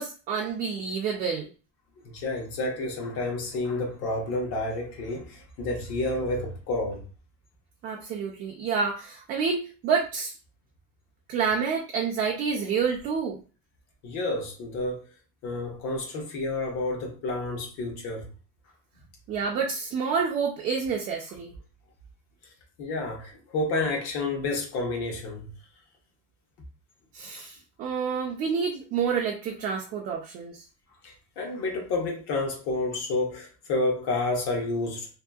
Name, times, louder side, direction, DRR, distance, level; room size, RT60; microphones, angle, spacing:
voice 1, 0.0-1.5 7.8-10.3 11.3-13.4 19.3-21.5 27.1-30.6, right 6 dB, 35° right, 0.4 m, -28 dB
voice 2, 2.0-7.1 14.0-15.0 15.4-18.3 22.8-25.5 31.0-35.1, left 2 dB, 55° left, 0.9 m, -30 dB
2.7 x 2.5 x 2.3 m
cardioid pair, 170°, 31 cm